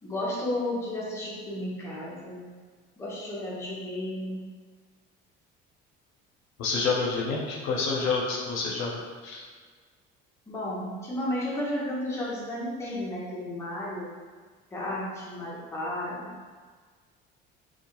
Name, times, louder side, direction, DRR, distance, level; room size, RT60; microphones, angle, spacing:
voice 1, 0.0-2.4 3.0-4.4 10.5-14.1 14.7-16.3, left 1 dB, 15° left, -6 dB, 0.6 m, -33 dB
voice 2, 6.6-9.5, left 4 dB, 75° left, -2 dB, 0.6 m, -28 dB
2.2 x 2.2 x 2.9 m, 1.5 s
cardioid pair, 140°, 21 cm